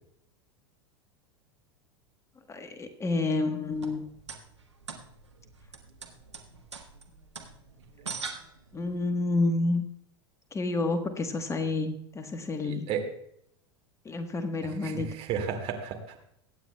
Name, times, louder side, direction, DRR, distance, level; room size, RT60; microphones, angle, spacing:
voice 1, 2.5-4.0 8.7-9.9 10.5-12.9 14.0-15.2, left 2 dB, 20° left, 7 dB, 1.1 m, -29 dB
sound 1, 3.6-9.0, right 4 dB, 85° right, 1.3 m, -43 dB
voice 2, 12.6-13.0 14.8-15.0 15.3-16.2, right 7 dB, 45° right, 4 dB, 2.1 m, -32 dB
23.0 x 9.1 x 2.2 m, 0.72 s
figure-of-eight pair, 85°, 14 cm